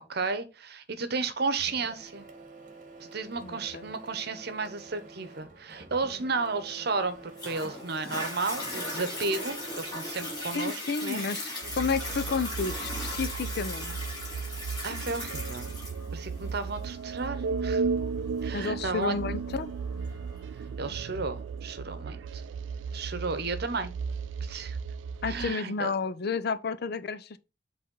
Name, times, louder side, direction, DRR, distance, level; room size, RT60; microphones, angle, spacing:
voice 1, 0.1-2.3 3.0-11.3 14.8-15.7 16.1-17.8 18.4-19.1 20.8-22.4 22.9-23.9 24.4-24.8 25.3-25.9, right 4 dB, 60° right, 0.9 m, -33 dB
Printer, 1.6-10.6, right 3 dB, 45° right, 1.3 m, -48 dB
voice 2, 3.4-3.8 10.5-11.5 11.8-14.0 18.5-19.7 25.2-27.4, left 4 dB, 60° left, 0.6 m, -31 dB
Toilet flush, 7.4-20.4 21.0-21.1, left 1 dB, 20° left, 4.1 m, -38 dB
sound 1, 11.6-25.5, right 5 dB, 80° right, 0.3 m, -35 dB
7.7 x 3.5 x 3.7 m
head